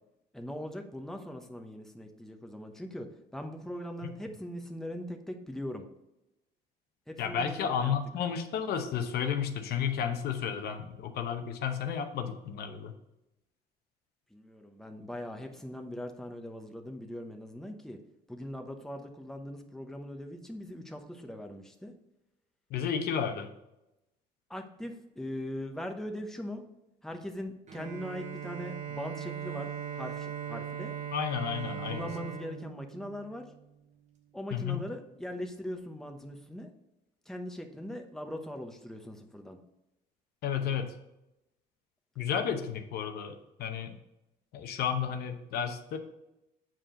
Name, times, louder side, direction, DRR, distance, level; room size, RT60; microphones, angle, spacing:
voice 1, 0.3-3.1 3.3-5.8 7.1-7.9 14.3-18.0 18.3-21.9 24.5-26.6 27.0-30.9 31.9-33.4 34.3-36.7 37.3-39.6, equal, 5° left, 4 dB, 0.9 m, -40 dB
voice 2, 7.2-12.9 22.7-23.5 31.1-32.0 34.5-34.9 40.4-40.9 42.2-44.0 44.5-46.0, left 8 dB, 70° left, 7 dB, 0.9 m, -32 dB
Bowed string instrument, 27.7-33.7, right 9 dB, 45° right, 1.2 m, -39 dB
7.4 x 4.9 x 3.8 m, 0.91 s
cardioid pair, 110°, 17 cm